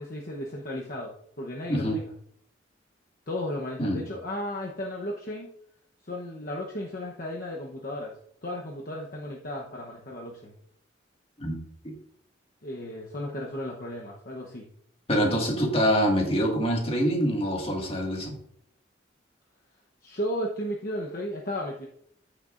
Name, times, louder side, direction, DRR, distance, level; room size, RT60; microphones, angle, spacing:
voice 1, 0.0-2.0 3.3-5.5 6.1-8.2 8.4-10.6 12.6-14.6 15.1-15.3 20.0-21.9, left 1 dB, 50° left, -1 dB, 1.0 m, -34 dB
voice 2, 15.1-18.3, equal, 30° left, 0 dB, 2.0 m, -25 dB
14.0 x 6.7 x 2.6 m, 0.68 s
head